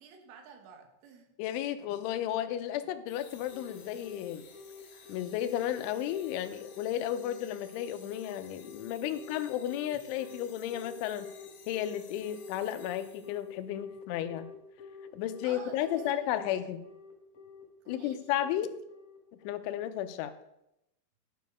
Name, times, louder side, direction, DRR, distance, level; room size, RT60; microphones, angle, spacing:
voice 1, 0.0-1.3 15.4-16.3 17.9-18.2, right 6 dB, 85° right, 5 dB, 3.8 m, -50 dB
voice 2, 1.4-4.5 5.1-11.3 11.7-14.5 15.1-16.8 17.9-18.7 19.4-20.3, left 11 dB, 85° left, 10 dB, 3.1 m, -33 dB
sound 1, 3.1-13.6, left 7 dB, 70° left, 3.3 m, -56 dB
Telephone, 3.5-19.7, left 4 dB, 45° left, 3.8 m, -49 dB
12.5 x 6.7 x 5.2 m, 0.85 s
omnidirectional pair, 5.5 m